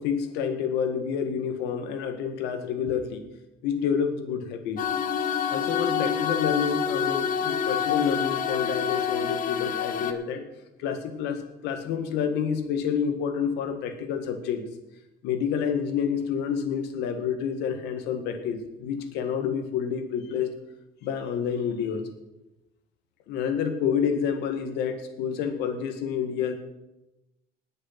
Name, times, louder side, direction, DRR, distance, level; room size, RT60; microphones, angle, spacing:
voice 1, 0.0-3.2 3.6-4.8 5.5-10.4 10.8-14.7 15.2-20.5 21.0-22.1 23.3-26.6, left 7 dB, 90° left, 7 dB, 1.8 m, -28 dB
sound 1, 4.8-10.1, left 7 dB, 55° left, 1.2 m, -27 dB
19.5 x 6.6 x 5.9 m, 0.98 s
cardioid pair, 110°, 17 cm